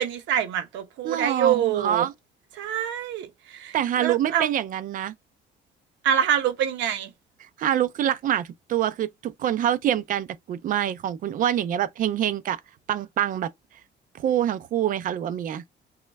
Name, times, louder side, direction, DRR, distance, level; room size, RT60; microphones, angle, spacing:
voice 1, 0.0-2.1 2.6-4.5 6.0-7.1, right 9 dB, 90° right, 0.8 m, -25 dB
voice 2, 1.0-2.1 3.7-5.1 7.6-12.6 12.9-13.5 14.1-15.6, right 11 dB, 50° right, 0.4 m, -25 dB
3.1 x 2.2 x 3.3 m
cardioid pair, 160°, 18 cm